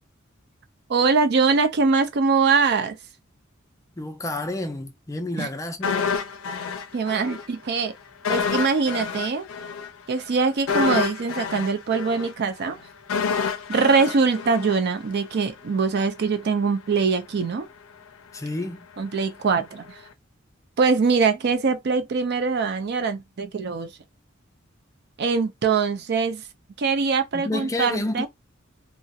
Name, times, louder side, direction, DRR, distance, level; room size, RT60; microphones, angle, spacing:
voice 1, 0.9-3.0 5.4-5.5 6.9-7.9 8.3-9.5 10.1-12.8 13.7-17.7 19.0-20.0 20.8-23.9 25.2-26.4 26.8-28.3, right 4 dB, 55° right, 0.4 m, -23 dB
voice 2, 4.0-6.1 18.3-18.9 27.3-28.3, left 2 dB, 15° left, 0.3 m, -30 dB
sound 1, 5.8-7.5 7.7-7.9 8.2-15.3 15.6-15.8, left 6 dB, 85° left, 0.4 m, -28 dB
2.4 x 2.0 x 2.7 m
head